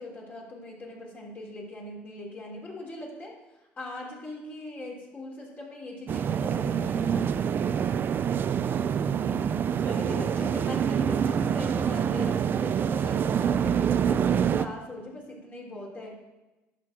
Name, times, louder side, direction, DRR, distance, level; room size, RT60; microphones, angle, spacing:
voice 1, 0.0-3.3 3.8-7.3 9.8-16.1, left 2 dB, 35° left, -2 dB, 3.0 m, -40 dB
sound 1, 6.1-14.7, right 8 dB, 40° right, 0.4 m, -26 dB
voice 2, 8.6-11.1, right 7 dB, 70° right, 6 dB, 0.9 m, -41 dB
11.0 x 6.0 x 3.7 m, 1.0 s
supercardioid pair, 85°, 5 cm